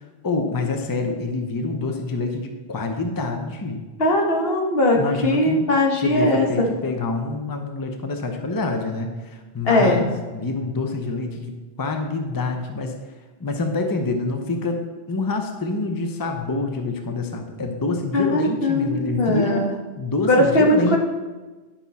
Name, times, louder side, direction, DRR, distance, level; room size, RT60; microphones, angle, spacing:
voice 1, 0.2-3.8 4.9-5.7 6.0-13.0 13.4-19.7 20.0-21.0, left 3 dB, 25° left, 4 dB, 0.7 m, -26 dB
voice 2, 4.0-6.7 9.6-10.0 18.1-19.7 20.3-21.0, left 1 dB, 70° left, 0 dB, 1.5 m, -19 dB
10.5 x 5.7 x 4.1 m, 1.2 s
omnidirectional pair, 1.0 m